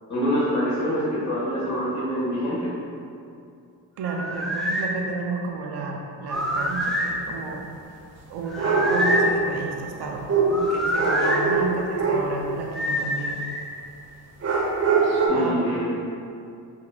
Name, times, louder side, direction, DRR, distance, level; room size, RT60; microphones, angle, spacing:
voice 1, 0.1-2.7 15.3-15.9, equal, 45° left, -8 dB, 1.2 m, -25 dB
sound 1, 4.0-4.9 6.2-7.2 8.5-9.3 10.5-11.4 12.7-13.6, left 1 dB, ahead, 0.4 m, -26 dB
voice 2, 4.0-7.7 8.3-13.4 15.2-15.7, right 3 dB, 75° right, 0 dB, 0.6 m, -32 dB
sound 2, 6.3-6.4 8.5-9.5 10.3-12.4 14.4-15.3, right 4 dB, 40° right, 0.8 m, -22 dB
5.9 x 2.5 x 2.2 m, 2.5 s
cardioid pair, 80°, 41 cm